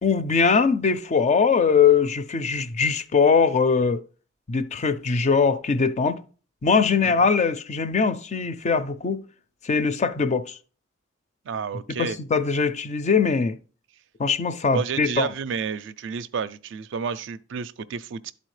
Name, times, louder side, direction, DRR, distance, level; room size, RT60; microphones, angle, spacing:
voice 1, 0.0-4.0 4.5-6.2 6.6-9.2 9.6-10.6 12.0-13.6 14.2-15.3, left 5 dB, 35° left, 0.4 m, -21 dB
voice 2, 11.5-12.2 14.7-18.3, right 6 dB, 65° right, 0.4 m, -30 dB
11.5 x 4.1 x 3.2 m
head